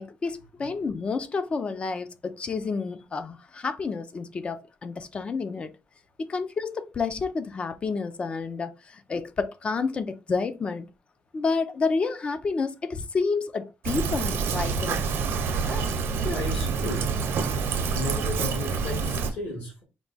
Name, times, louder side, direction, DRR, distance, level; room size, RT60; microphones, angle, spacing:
voice 1, 0.0-5.7 6.2-10.9 11.3-15.1 15.6-16.0, left 4 dB, 25° left, 0.4 m, -30 dB
Fill (with liquid), 13.8-19.3, right 5 dB, 70° right, 0.7 m, -27 dB
voice 2, 16.2-17.1 17.9-19.8, left 2 dB, 65° left, 1.8 m, -34 dB
4.5 x 2.2 x 4.0 m
cardioid pair, 170°, 4 cm